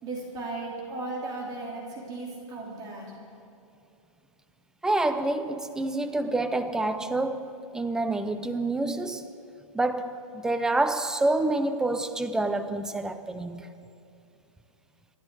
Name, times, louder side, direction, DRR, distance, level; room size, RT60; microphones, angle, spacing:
voice 1, 0.0-3.1, right 2 dB, 20° right, 2.9 m, -36 dB
voice 2, 4.8-9.3 9.7-13.7, right 2 dB, 5° right, 0.4 m, -27 dB
26.0 x 11.0 x 4.6 m
hypercardioid pair, 150°, 18 cm